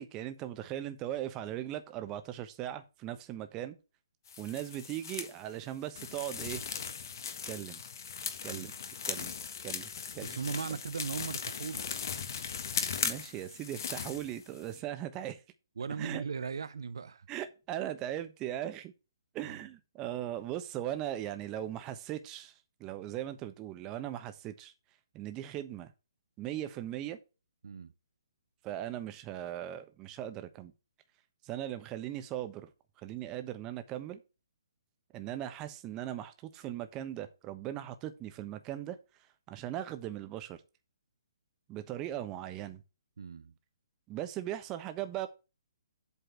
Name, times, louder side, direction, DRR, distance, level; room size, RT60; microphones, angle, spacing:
voice 1, 0.0-3.8 4.4-6.6 7.4-7.8 8.4-8.7 9.1-9.3 9.6-10.4 13.0-15.4 16.0-16.2 17.3-18.9 19.3-22.5 22.8-24.7 25.1-25.9 26.4-27.2 28.6-30.7 31.4-32.7 33.0-34.2 35.1-39.0 39.5-40.6 41.7-42.8 44.1-45.3, right 12 dB, 25° right, 1.1 m, -39 dB
sound 1, 4.3-5.3 5.9-14.8, left 6 dB, 55° left, 1.6 m, -38 dB
voice 2, 10.2-11.9 15.8-17.3 19.4-19.6 27.6-27.9 43.2-43.5, right 6 dB, 70° right, 0.6 m, -38 dB
8.2 x 4.2 x 6.5 m
hypercardioid pair, 140°, 2 cm